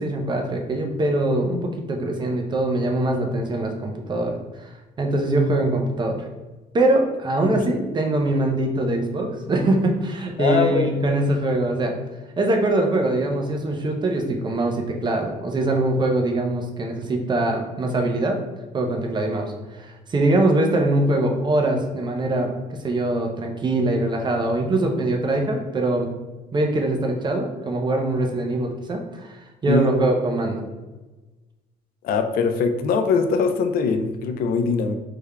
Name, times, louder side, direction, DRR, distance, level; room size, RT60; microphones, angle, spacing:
voice 1, 0.0-4.7 5.0-6.2 6.7-11.9 12.4-18.4 18.7-22.5 22.8-26.1 26.5-29.4 29.6-30.7, right 2 dB, 25° right, 2 dB, 0.5 m, -23 dB
voice 2, 10.4-10.9 29.7-30.1 32.0-34.9, left 5 dB, 60° left, 7 dB, 0.4 m, -22 dB
3.4 x 3.3 x 2.2 m, 1.2 s
cardioid pair, 110°, 17 cm